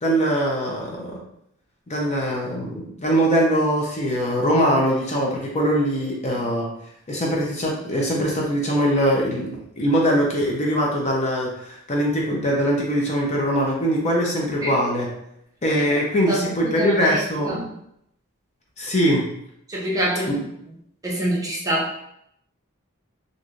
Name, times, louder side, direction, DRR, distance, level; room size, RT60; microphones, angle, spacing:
voice 1, 0.0-1.2 1.9-6.7 7.1-9.5 9.8-15.1 15.6-17.6 18.8-19.2, equal, 30° left, -3 dB, 0.6 m, -22 dB
voice 2, 16.3-17.6 19.7-20.5 21.0-22.0, right 1 dB, 15° right, -5 dB, 0.6 m, -26 dB
3.2 x 2.6 x 2.4 m, 0.75 s
head